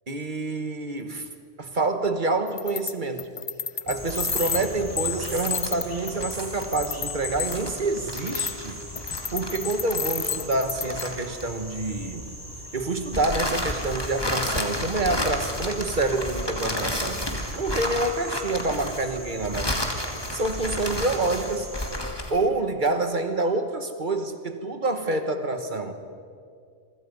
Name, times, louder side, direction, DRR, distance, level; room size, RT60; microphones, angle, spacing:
voice 1, 0.1-1.3 1.6-3.3 3.9-8.8 9.3-12.3 12.7-17.2 17.5-19.8 20.3-21.7 22.3-25.9, right 2 dB, 40° right, 7 dB, 1.7 m, -27 dB
sound 1, 2.5-2.9 3.2-7.6 8.1-8.6 9.0-11.1, left 6 dB, 40° left, 0.5 m, -31 dB
sound 2, 4.0-11.8 13.1-22.4, left 1 dB, 20° left, 2.1 m, -32 dB
sound 3, 4.0-22.0, equal, 20° right, 4.0 m, -40 dB
28.0 x 24.0 x 5.5 m, 2.2 s
omnidirectional pair, 1.2 m